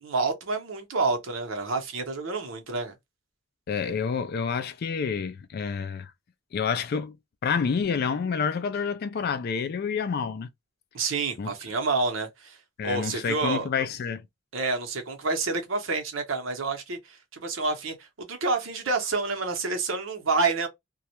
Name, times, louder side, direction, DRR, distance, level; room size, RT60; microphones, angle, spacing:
voice 1, 0.0-2.9 10.9-12.6 12.8-13.7 14.5-20.7, right 3 dB, 85° right, 0.8 m, -28 dB
voice 2, 3.7-6.1 6.5-7.2 7.4-10.5 11.4-11.5 12.8-14.2, left 6 dB, 55° left, 0.3 m, -28 dB
2.3 x 2.1 x 2.8 m
head